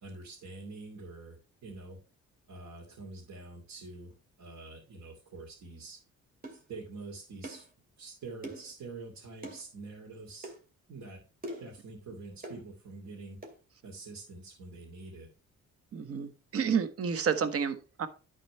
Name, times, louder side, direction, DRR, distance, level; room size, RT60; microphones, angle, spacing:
voice 1, 0.0-2.0 2.5-6.0 6.5-7.7 8.0-10.5 10.9-11.2 11.6-13.5 13.8-15.3, right 3 dB, 65° right, -3 dB, 2.6 m, -46 dB
sound 1, 6.4-6.6 7.4-7.7 8.4-8.7 9.4-9.6 10.4-10.6 11.4-11.7 12.4-12.6 13.4-13.6, right 1 dB, 30° right, 2.4 m, -42 dB
voice 2, 15.9-18.1, right 7 dB, 50° right, 11 dB, 1.1 m, -30 dB
11.0 x 4.2 x 4.3 m, 0.33 s
cardioid pair, 90°, 30 cm